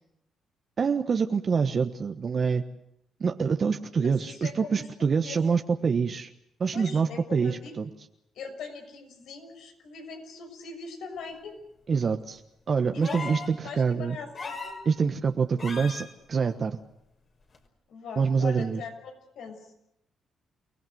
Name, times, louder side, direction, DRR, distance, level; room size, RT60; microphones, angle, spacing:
voice 1, 0.8-2.6 3.2-6.3 6.6-7.9 11.9-12.4 12.7-14.2 14.8-16.8 18.2-18.8, right 5 dB, 45° right, 6 dB, 1.3 m, -26 dB
voice 2, 4.2-5.4 6.7-7.7 8.3-11.6 12.9-14.8 17.9-19.7, left 5 dB, 75° left, 6 dB, 6.5 m, -41 dB
sound 1, 13.0-13.5 14.3-14.8 15.6-16.1 17.5-17.6, left 4 dB, 45° left, 5.7 m, -36 dB
29.5 x 18.5 x 7.9 m, 0.79 s
cardioid pair, 90°, 0 cm